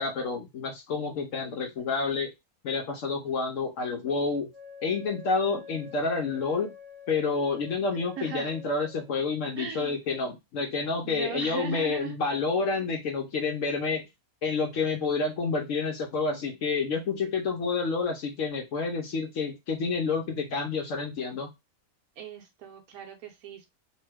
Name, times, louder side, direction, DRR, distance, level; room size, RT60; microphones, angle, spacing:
voice 1, 0.0-2.3 2.6-4.5 4.8-6.7 7.1-14.0 14.4-21.5, left 4 dB, 65° left, 2 dB, 0.9 m, -29 dB
Wind instrument woodwind instrument, 4.5-9.1, left 6 dB, 45° right, 0.7 m, -47 dB
voice 2, 8.2-8.5 9.6-10.0 11.0-12.2 22.2-23.7, right 8 dB, 80° right, 4 dB, 1.2 m, -38 dB
3.0 x 2.2 x 3.2 m, 0.21 s
omnidirectional pair, 1.5 m